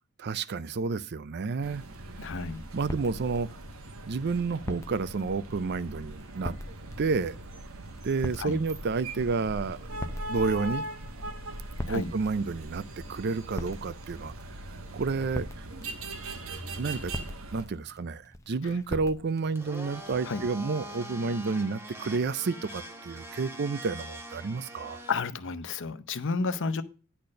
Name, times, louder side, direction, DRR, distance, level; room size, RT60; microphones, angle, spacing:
voice 1, 0.2-1.8 2.7-3.5 4.0-6.6 7.0-7.4 8.0-9.9 10.3-10.9 11.9-12.8 13.1-14.3 14.7-15.5 16.7-17.1 17.5-25.0, right 4 dB, 50° right, 0.5 m, -30 dB
sound 1, 1.6-17.7, right 1 dB, 70° right, 1.1 m, -41 dB
sound 2, 1.7-20.6, left 1 dB, 15° left, 0.7 m, -44 dB
voice 2, 2.2-2.6 8.4-8.6 11.9-12.1 18.6-18.7 20.3-20.4 25.1-26.8, left 4 dB, 60° left, 0.7 m, -31 dB
Domestic sounds home sounds, 19.5-25.1, right 1 dB, 10° right, 1.1 m, -43 dB
10.0 x 4.3 x 6.4 m
head